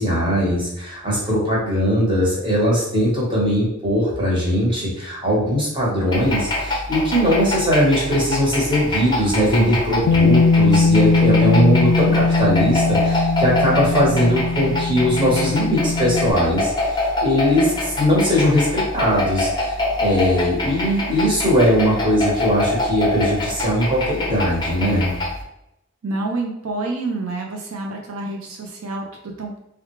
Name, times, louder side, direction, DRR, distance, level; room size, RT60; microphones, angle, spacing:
voice 1, 0.0-25.1, equal, 25° right, -5 dB, 1.2 m, -20 dB
sound 1, 6.1-25.4, left 2 dB, 20° left, 0.6 m, -25 dB
Bass guitar, 10.1-16.3, left 3 dB, 75° left, 0.3 m, -19 dB
voice 2, 26.0-29.6, right 2 dB, 90° right, 1 dB, 0.6 m, -28 dB
3.5 x 2.3 x 3.1 m, 0.82 s
head